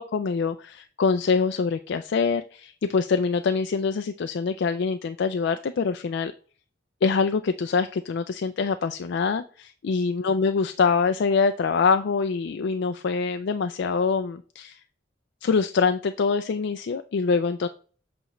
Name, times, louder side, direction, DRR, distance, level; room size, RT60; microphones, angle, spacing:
voice 1, 0.0-6.3 7.0-14.8 15.4-17.7, left 5 dB, 65° left, 9 dB, 0.4 m, -24 dB
7.9 x 4.3 x 3.1 m, 0.40 s
head